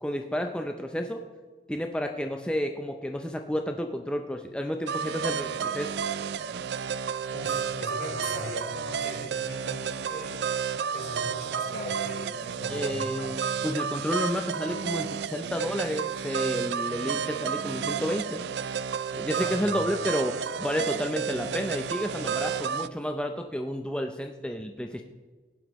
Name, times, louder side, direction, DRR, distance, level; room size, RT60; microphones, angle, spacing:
voice 1, 0.0-1.2 1.7-5.9 12.7-18.4 19.2-25.0, equal, 5° left, 4 dB, 0.5 m, -31 dB
sound 1, 4.9-22.9, right 7 dB, 75° right, 0.4 m, -31 dB
voice 2, 7.3-10.4 10.9-13.4 19.4-19.8, left 1 dB, 60° left, -2 dB, 3.9 m, -39 dB
16.5 x 11.0 x 3.1 m, 1.4 s
head